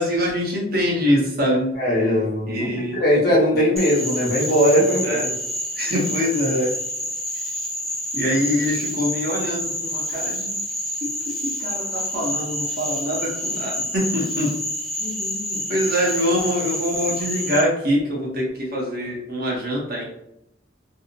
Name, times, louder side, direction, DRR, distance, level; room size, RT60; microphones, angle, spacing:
voice 1, 0.0-1.7 2.5-3.0 5.0-5.3 5.8-6.7 8.1-10.5 11.0-14.5 15.0-20.0, equal, 55° right, -3 dB, 0.9 m, -24 dB
voice 2, 1.8-5.1, equal, 60° left, -5 dB, 1.0 m, -19 dB
Frog, 3.8-17.6, equal, ahead, 0.4 m, -28 dB
2.7 x 2.1 x 2.7 m, 0.82 s
head